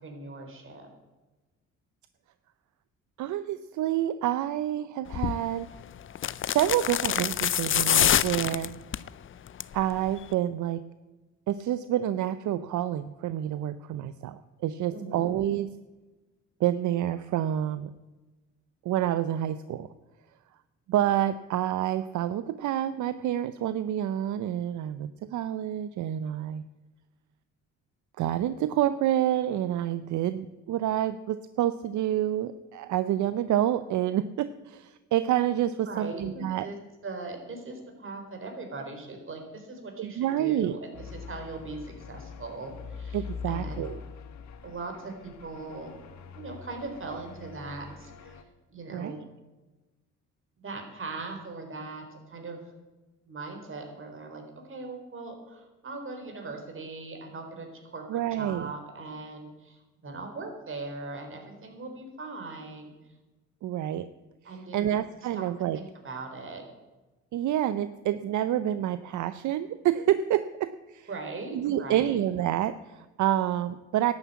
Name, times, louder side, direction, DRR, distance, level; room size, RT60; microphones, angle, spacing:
voice 1, 0.0-0.9 14.9-15.3 35.9-36.8 37.0-43.9 44.6-45.9 46.3-48.4 48.7-49.2 50.6-52.6 53.3-54.4 54.7-62.9 64.4-64.9 65.3-65.5 65.7-66.6 71.1-72.2, right 3 dB, 45° right, 4 dB, 4.0 m, -40 dB
voice 2, 3.2-5.7 6.4-8.7 9.7-10.8 11.5-15.7 16.6-17.9 18.8-19.9 20.9-26.6 28.2-36.7 40.0-40.7 43.1-44.0 48.9-49.2 58.1-58.7 63.6-64.1 64.4-65.8 67.3-71.1 71.5-74.1, right 12 dB, 75° right, 14 dB, 0.6 m, -28 dB
sound 1, 5.1-5.4 6.2-9.1 9.5-9.8 10.1-10.2, left 10 dB, 45° left, 0.5 m, -25 dB
sound 2, 40.9-48.4, left 5 dB, 70° left, 1.4 m, -43 dB
12.0 x 9.7 x 8.4 m, 1.2 s
cardioid pair, 90°, 30 cm